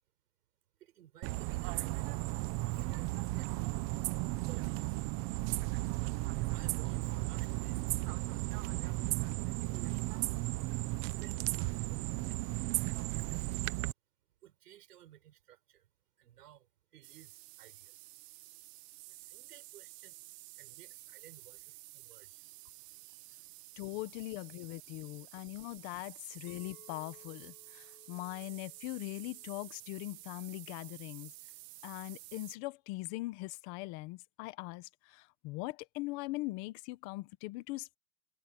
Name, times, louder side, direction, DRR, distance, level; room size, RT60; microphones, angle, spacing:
voice 1, 0.8-2.2 2.6-3.8 4.3-5.2 6.5-8.9 9.4-10.2 11.0-12.5 13.1-13.8 14.4-15.9 16.2-18.0 19.1-20.2 20.6-22.5, right 12 dB, 85° right, 4.9 m, -58 dB
sound 1, 1.2-13.9, right 20 dB, 25° right, 0.8 m, -35 dB
sound 2, 17.0-32.6, right 20 dB, 45° right, 1.3 m, -52 dB
voice 2, 23.8-31.3 31.8-38.0, left 21 dB, 30° left, 1.1 m, -41 dB
Chink clink, 26.5-30.7, left 12 dB, 60° left, 6.4 m, -63 dB
supercardioid pair, 160°, 46 cm